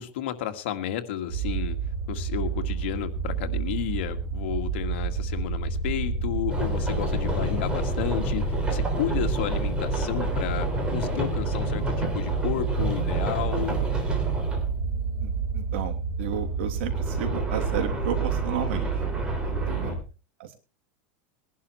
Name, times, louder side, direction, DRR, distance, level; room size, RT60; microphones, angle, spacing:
voice 1, 0.0-1.8 2.1-13.8 19.5-20.0, left 11 dB, 75° left, 7 dB, 1.8 m, -32 dB
sound 1, 1.3-20.0, right 4 dB, 30° right, 2.7 m, -29 dB
sound 2, 6.5-14.7 16.9-19.9, right 1 dB, 15° right, 3.3 m, -31 dB
voice 2, 15.2-18.9 19.4-20.0 20.4-20.5, right 9 dB, 70° right, 5 dB, 2.9 m, -32 dB
21.0 x 11.5 x 3.2 m, 0.31 s
supercardioid pair, 155°, 6 cm